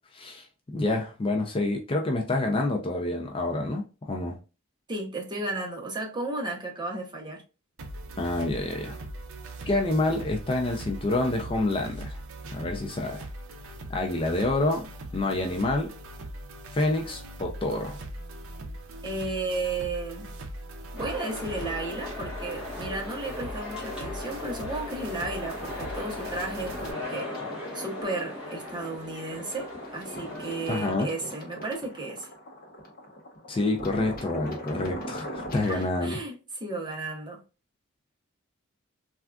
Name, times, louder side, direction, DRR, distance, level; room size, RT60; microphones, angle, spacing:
voice 1, 0.1-0.5 0.7-4.4 8.2-9.0 9.7-12.2 12.5-13.2 13.9-14.9 15.1-15.9 16.7-18.0 30.7-31.1 33.5-36.2, left 2 dB, 25° left, 0.4 m, -27 dB
voice 2, 4.9-7.4 19.0-20.3 20.9-27.3 27.7-32.3 35.7-36.3 36.6-37.4, right 2 dB, 20° right, 0.7 m, -34 dB
sound 1, 7.8-26.9, right 1 dB, 75° right, 0.5 m, -41 dB
sound 2, 21.0-30.9, left 2 dB, 5° right, 1.2 m, -38 dB
sound 3, 25.0-35.8, equal, 45° left, 0.8 m, -42 dB
3.4 x 2.4 x 2.3 m
head